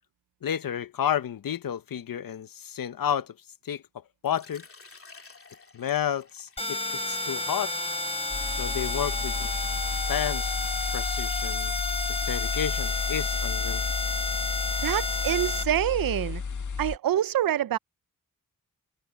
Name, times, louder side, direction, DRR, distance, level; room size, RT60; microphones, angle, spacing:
voice 1, 0.4-3.3 3.6-3.8 4.2-4.6 5.7-7.7 8.5-9.5 10.1-10.5 10.9-11.7 12.3-13.8, left 9 dB, 80° left, 0.8 m, -31 dB
Water / Liquid, 4.2-9.8, left 4 dB, 40° left, 2.8 m, -53 dB
sound 1, 6.6-15.6, left 2 dB, 15° left, 1.2 m, -31 dB
sound 2, 8.3-17.0, left 5 dB, 60° left, 1.7 m, -32 dB
voice 2, 14.8-16.4 16.8-17.8, right 11 dB, 90° right, 0.5 m, -26 dB
wide cardioid pair, 95°, 33 cm